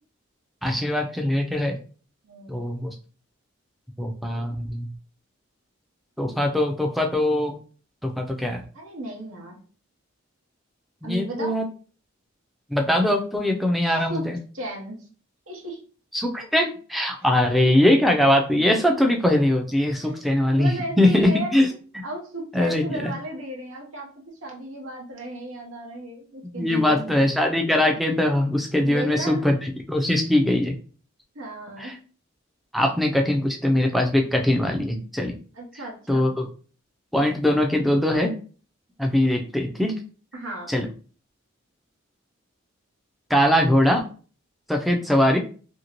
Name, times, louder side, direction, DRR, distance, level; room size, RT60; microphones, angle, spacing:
voice 1, 0.6-1.8 2.5-2.9 4.0-4.9 6.2-7.6 8.0-8.6 11.0-11.6 12.7-14.4 16.1-21.7 21.9-22.0 22.5-23.1 26.6-30.8 31.8-31.9 32.7-35.4 36.1-36.5 37.1-38.3 39.0-39.9 40.7-40.9 43.3-44.0 44.7-45.4, left 1 dB, ahead, 2 dB, 0.3 m, -21 dB
voice 2, 2.2-2.6 8.7-9.6 11.0-11.6 13.8-14.3 14.5-15.1 15.5-15.8 20.0-20.2 20.5-21.5 22.0-24.1 24.4-27.3 28.8-29.5 31.3-32.0 35.5-36.3 40.3-40.7, right 1 dB, 85° right, 0 dB, 0.8 m, -35 dB
2.8 x 2.6 x 2.9 m, 0.40 s
head